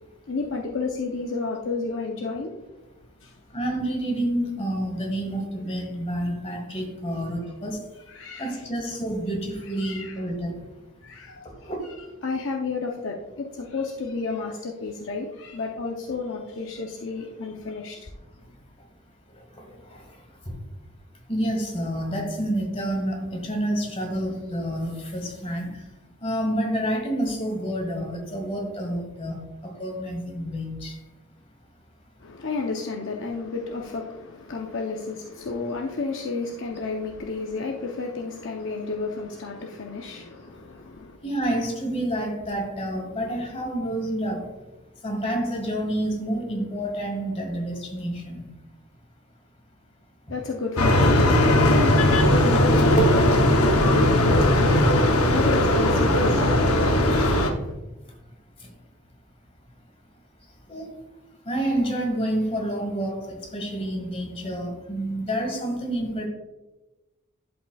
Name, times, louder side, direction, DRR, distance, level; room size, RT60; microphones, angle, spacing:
voice 1, 0.3-2.5 3.2-3.3 8.1-8.5 9.6-10.2 11.0-11.7 12.2-18.1 32.2-41.2 50.3-57.7, left 4 dB, 60° left, 0 dB, 0.7 m, -31 dB
voice 2, 3.5-7.8 8.4-10.6 11.7-11.8 19.6-19.7 19.9-20.0 21.3-25.8 26.2-29.4 29.6-31.0 41.2-44.5 45.0-48.4 52.7-52.8 60.7-60.9 61.5-66.3, right 1 dB, 30° left, 1 dB, 1.7 m, -28 dB
sound 1, 50.8-57.5, left 1 dB, 90° left, 0.9 m, -19 dB
11.0 x 5.3 x 2.3 m, 1.1 s
head